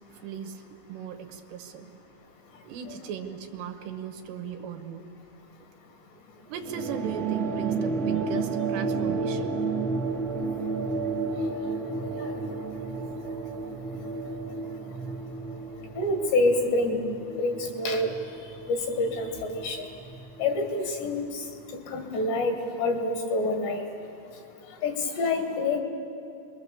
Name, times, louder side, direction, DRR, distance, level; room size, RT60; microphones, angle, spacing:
voice 1, 0.2-2.1 2.6-5.1 6.5-9.6 11.7-11.9, right 7 dB, 75° right, 5 dB, 3.1 m, -37 dB
sound 1, 6.6-21.5, right 4 dB, 50° right, 1.1 m, -32 dB
voice 2, 16.0-17.0 17.3-18.1 18.7-19.8 20.4-21.3 21.9-23.8 24.8-25.8, left 2 dB, 70° left, 4 dB, 4.2 m, -27 dB
28.5 x 22.5 x 7.2 m, 2.6 s
omnidirectional pair, 5.3 m